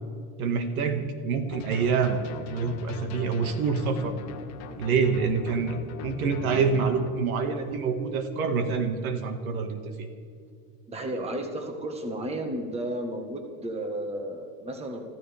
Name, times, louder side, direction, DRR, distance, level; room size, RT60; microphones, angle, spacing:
voice 1, 0.4-4.1 4.8-5.8 6.0-10.1, right 5 dB, 85° right, 6 dB, 2.0 m, -26 dB
sound 1, 1.5-7.1, left 6 dB, 40° left, 1.3 m, -41 dB
voice 2, 10.9-15.0, right 1 dB, 15° right, 4 dB, 1.5 m, -33 dB
25.0 x 15.0 x 3.6 m, 2.3 s
supercardioid pair, 145°, 42 cm